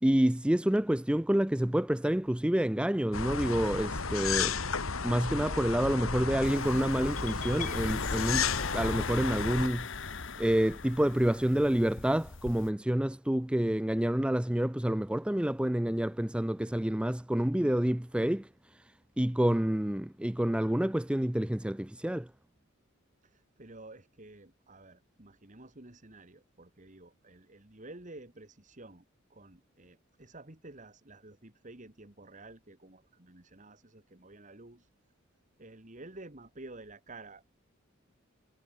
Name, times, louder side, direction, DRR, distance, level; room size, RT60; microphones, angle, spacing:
voice 1, 0.0-4.6 5.0-9.9 10.4-18.5 18.7-18.8 19.2-22.3, right 1 dB, 5° right, 0.4 m, -28 dB
sound 1, 3.1-9.7, left 5 dB, 90° left, 1.9 m, -33 dB
voice 2, 6.0-7.1 23.2-29.1 29.3-34.9 35.6-37.5, right 2 dB, 35° right, 2.0 m, -51 dB
sound 2, 6.4-12.7, left 4 dB, 65° left, 1.4 m, -40 dB
sound 3, 7.2-9.1, left 5 dB, 40° left, 5.7 m, -42 dB
head